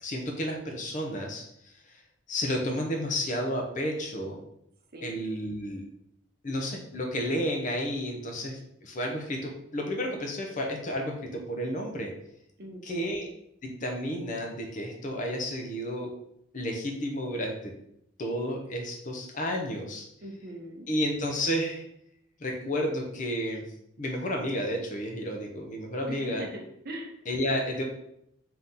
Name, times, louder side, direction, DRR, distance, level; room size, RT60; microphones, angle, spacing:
voice 1, 0.0-1.5 2.3-4.4 5.0-5.8 6.4-12.1 12.8-13.3 13.6-16.1 16.5-17.7 18.2-20.1 20.9-21.8 22.4-23.7 24.0-26.5 27.3-27.8, equal, 40° left, 2 dB, 0.6 m, -31 dB
voice 2, 12.6-13.2 20.2-20.9 26.1-27.1, right 1 dB, 45° right, 2 dB, 0.6 m, -40 dB
3.9 x 2.8 x 3.7 m, 0.77 s
head